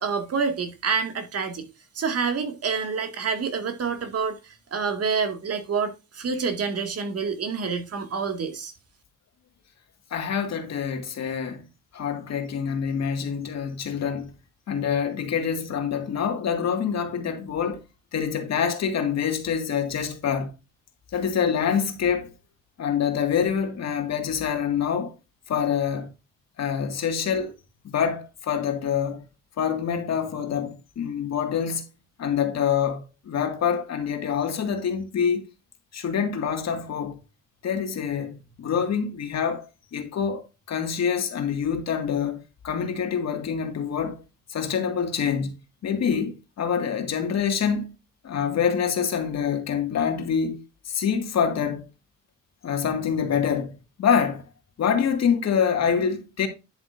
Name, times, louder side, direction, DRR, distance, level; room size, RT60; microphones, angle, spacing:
voice 1, 0.0-1.7 2.0-4.4 4.7-8.7, right 5 dB, 55° right, 2.1 m, -27 dB
voice 2, 10.1-11.7 11.9-14.3 14.7-17.8 18.1-20.5 21.1-22.3 22.8-25.1 25.5-26.1 26.6-27.5 27.8-29.2 29.6-31.8 32.2-35.4 35.9-37.2 37.6-40.4 40.7-44.2 44.5-45.6 45.8-47.9 48.2-50.6 50.9-51.8 52.6-54.4 54.8-56.5, left 7 dB, 60° left, 2.0 m, -26 dB
10.5 x 7.3 x 2.6 m
cardioid pair, 90°, 30 cm